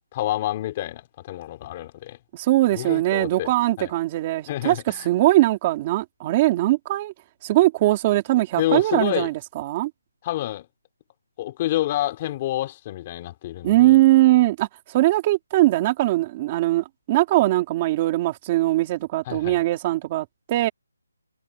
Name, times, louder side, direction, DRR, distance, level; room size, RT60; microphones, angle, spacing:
voice 1, 0.1-2.2 2.7-3.5 3.8-3.9 4.5-5.1 8.6-9.3 10.2-10.7 11.4-14.0 19.3-19.6, left 14 dB, 20° left, 3.7 m, -28 dB
voice 2, 2.3-7.1 7.4-9.9 13.6-20.7, right 17 dB, 15° right, 3.4 m, -21 dB
hypercardioid pair, 175°, 0 cm